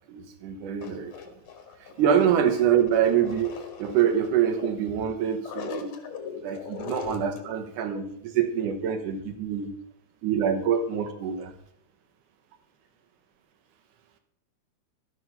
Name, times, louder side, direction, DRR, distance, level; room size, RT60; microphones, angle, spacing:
voice 1, 0.1-1.3 2.0-6.0 6.4-9.7 10.2-11.5, right 8 dB, 85° right, 6 dB, 2.6 m, -25 dB
voice 2, 0.8-2.0 2.8-4.0 4.6-4.7 5.4-7.5, left 7 dB, 50° left, 5 dB, 2.0 m, -39 dB
12.5 x 6.2 x 5.5 m, 0.75 s
omnidirectional pair, 3.6 m